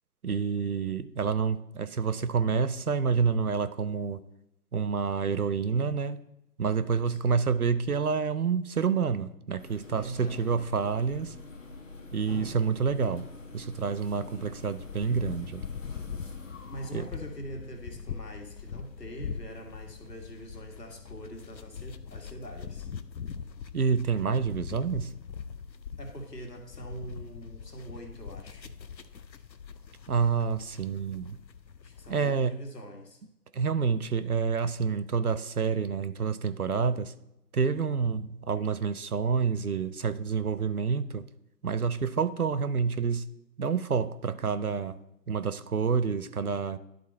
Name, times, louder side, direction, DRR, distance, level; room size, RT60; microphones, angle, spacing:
voice 1, 0.2-4.2 4.7-6.2 6.6-11.3 12.1-13.3 13.5-15.6 16.9-17.1 23.7-25.1 30.1-31.4 32.1-32.5 33.5-37.1 37.5-41.3 41.6-43.2 43.6-45.0 45.3-46.8, right 5 dB, 65° right, 14 dB, 0.5 m, -28 dB
sound 1, 9.6-20.6, left 3 dB, 50° left, 1.1 m, -47 dB
voice 2, 9.9-10.4 16.7-22.9 26.0-28.7 31.8-33.2, right 1 dB, 70° left, 3 dB, 1.8 m, -43 dB
sound 2, 14.8-32.2, left 6 dB, 90° left, 0.7 m, -42 dB
11.0 x 3.9 x 4.3 m, 0.85 s
figure-of-eight pair, 155°, 50 cm